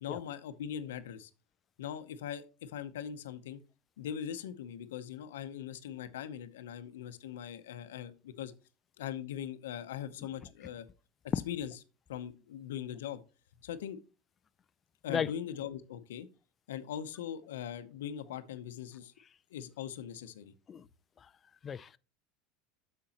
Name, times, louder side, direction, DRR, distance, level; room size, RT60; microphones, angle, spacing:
voice 1, 0.0-1.3 1.8-3.6 4.0-8.5 9.0-10.9 11.2-11.7 12.1-13.2 13.6-14.0 15.0-16.3 16.7-19.1 19.5-20.5, left 9 dB, 85° left, 0.7 m, -41 dB
voice 2, 21.6-22.0, left 7 dB, 30° left, 0.4 m, -33 dB
8.7 x 6.8 x 2.9 m
supercardioid pair, 105°, 0 cm